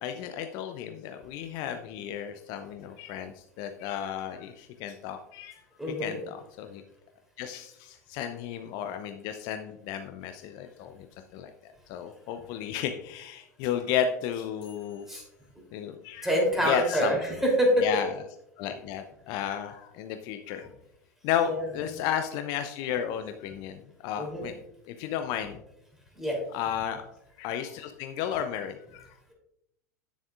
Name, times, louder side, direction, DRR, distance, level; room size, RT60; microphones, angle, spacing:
voice 1, 0.0-5.6 6.0-6.8 7.4-11.1 11.3-11.5 11.9-15.0 15.7-16.3 16.6-17.3 17.8-18.1 18.6-20.7 21.2-24.6 24.9-25.6 26.5-27.0 27.4-29.1, left 9 dB, 50° left, 7 dB, 0.5 m, -33 dB
voice 2, 5.8-6.2 15.1-15.2 16.2-17.9 21.5-21.6 24.2-24.4 26.1-26.4, equal, 5° right, -1 dB, 3.2 m, -26 dB
9.3 x 7.0 x 2.5 m, 0.81 s
figure-of-eight pair, 80°, 9 cm